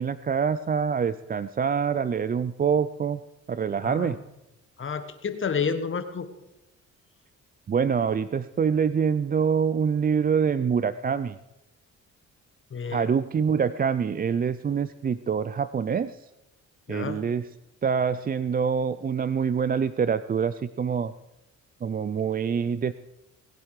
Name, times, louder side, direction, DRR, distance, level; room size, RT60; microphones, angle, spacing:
voice 1, 0.0-3.2 3.5-4.2 7.7-11.4 12.9-16.3 16.9-17.5 17.8-21.1 21.8-22.9, right 6 dB, 30° right, 15 dB, 0.5 m, -25 dB
voice 2, 3.8-4.2 4.8-6.3 12.7-13.1 16.9-17.2, left 6 dB, 40° left, 9 dB, 1.5 m, -30 dB
20.0 x 10.5 x 4.9 m, 0.94 s
cardioid pair, 90°, 30 cm